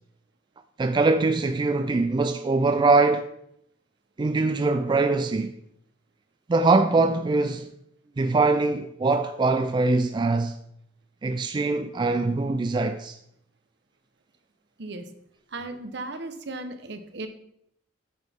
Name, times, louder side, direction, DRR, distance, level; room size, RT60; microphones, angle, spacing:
voice 1, 0.8-3.3 4.2-5.6 6.5-7.7 8.2-10.6 11.2-13.2, right 3 dB, 25° right, 0.3 m, -22 dB
voice 2, 14.8-15.1 15.5-17.3, right 2 dB, 65° right, 0.9 m, -36 dB
9.5 x 6.1 x 3.6 m
head